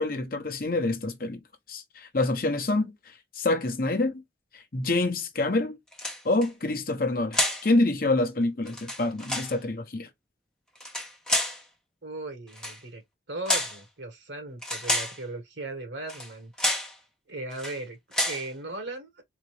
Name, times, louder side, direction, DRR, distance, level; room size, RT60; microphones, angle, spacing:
voice 1, 0.0-1.4 1.7-2.9 3.4-4.2 4.5-5.8 6.2-10.1, left 2 dB, 50° left, 0.8 m, -26 dB
sound 1, 5.9-6.5 7.3-7.7 8.7-9.5 10.8-11.6 12.5-12.8 13.5-13.8 14.6-15.2 16.1-16.3 16.6-16.9 17.5-17.8 18.1-18.5, left 1 dB, 5° left, 0.9 m, -29 dB
voice 2, 12.0-13.0 13.3-16.5 17.3-18.0 18.3-19.2, right 2 dB, 75° right, 1.6 m, -37 dB
3.9 x 2.9 x 3.1 m
head